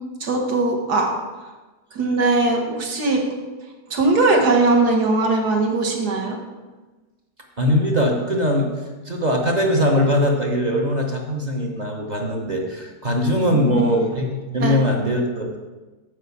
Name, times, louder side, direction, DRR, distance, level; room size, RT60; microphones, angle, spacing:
voice 1, 0.2-1.1 1.9-3.2 3.9-6.4 13.5-13.9 14.6-14.8, right 3 dB, 70° right, 1 dB, 1.8 m, -20 dB
voice 2, 7.6-8.7 9.1-15.5, equal, 35° right, 1 dB, 0.7 m, -21 dB
8.0 x 4.4 x 7.1 m, 1.2 s
omnidirectional pair, 1.8 m